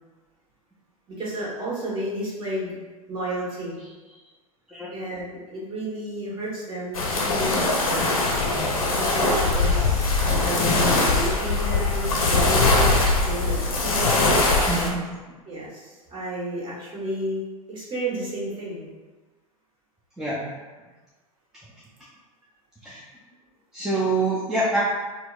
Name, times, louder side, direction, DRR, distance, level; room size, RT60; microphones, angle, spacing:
voice 1, 1.2-2.7 3.1-3.8 4.9-8.2 9.0-14.2 15.5-17.4 17.7-18.9, right 1 dB, 25° right, -7 dB, 1.4 m, -32 dB
sound 1, 6.9-14.9, left 3 dB, 80° left, 0.7 m, -21 dB
voice 2, 14.7-15.0 20.2-20.4 22.8-23.0 23.7-24.8, right 2 dB, 5° right, -9 dB, 0.6 m, -25 dB
4.4 x 2.0 x 2.4 m, 1.3 s
hypercardioid pair, 90°, 18 cm